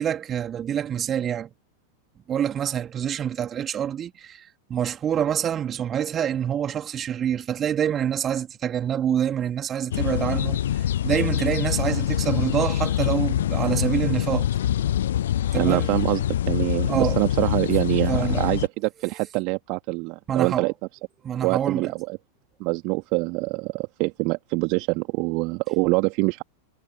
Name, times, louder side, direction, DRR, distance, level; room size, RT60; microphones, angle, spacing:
voice 1, 0.0-1.5 2.3-14.5 15.5-15.9 16.9-17.2 18.1-18.5 20.3-20.7 21.2-21.9, right 9 dB, 25° right, 3.2 m, -26 dB
sound 1, 9.9-18.7, left 11 dB, 60° left, 0.4 m, -25 dB
voice 2, 15.6-20.7 21.4-22.2 22.6-26.4, right 28 dB, 45° right, 2.0 m, -25 dB
figure-of-eight pair, 90°, 0 cm